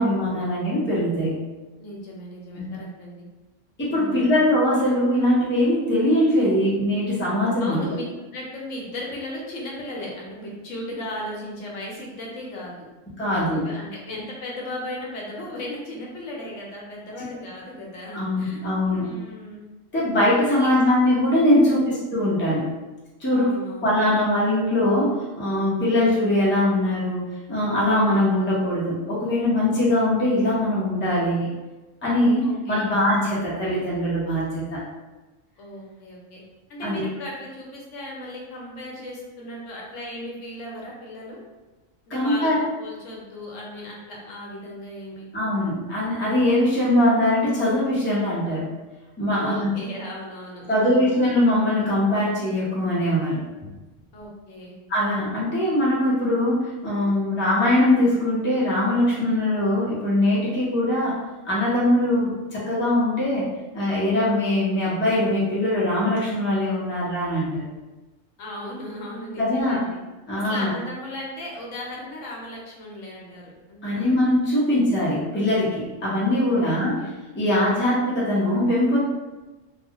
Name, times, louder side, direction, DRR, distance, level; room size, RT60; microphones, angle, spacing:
voice 1, 0.0-1.4 2.6-2.7 3.8-7.8 13.2-13.7 18.1-19.1 19.9-22.7 23.2-23.5 23.8-31.5 32.0-34.8 36.8-37.0 42.1-42.6 45.3-48.7 49.2-49.7 50.7-53.7 54.9-61.2 61.4-67.7 69.4-69.8 70.3-70.7 73.8-76.9 77.3-79.0, left 1 dB, 10° left, -8 dB, 0.6 m, -22 dB
voice 2, 1.8-3.2 3.9-4.4 7.6-8.0 8.3-12.9 13.5-18.6 19.0-19.7 20.5-20.7 21.5-21.9 23.3-23.9 32.4-32.9 35.6-36.4 36.7-41.4 42.1-42.5 42.8-45.2 49.3-51.2 54.1-54.8 68.4-70.0 70.4-74.1 76.5-77.1, left 1 dB, 75° left, -3 dB, 1.0 m, -36 dB
2.4 x 2.2 x 2.8 m, 1.1 s
omnidirectional pair, 1.3 m